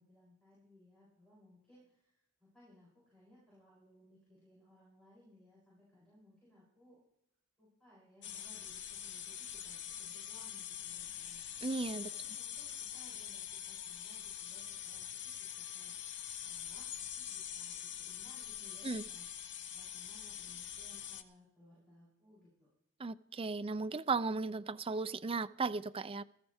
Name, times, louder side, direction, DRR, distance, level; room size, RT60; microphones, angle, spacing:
voice 1, 0.0-7.0 7.6-16.0 16.4-19.3 19.7-22.7, left 1 dB, 5° left, -9 dB, 7.4 m, -63 dB
sound 1, 8.2-21.2, left 9 dB, 50° left, 0.9 m, -44 dB
voice 2, 11.6-12.1 18.8-19.0 23.0-26.2, right 4 dB, 25° right, 12 dB, 0.4 m, -36 dB
20.0 x 14.5 x 3.5 m, 0.77 s
head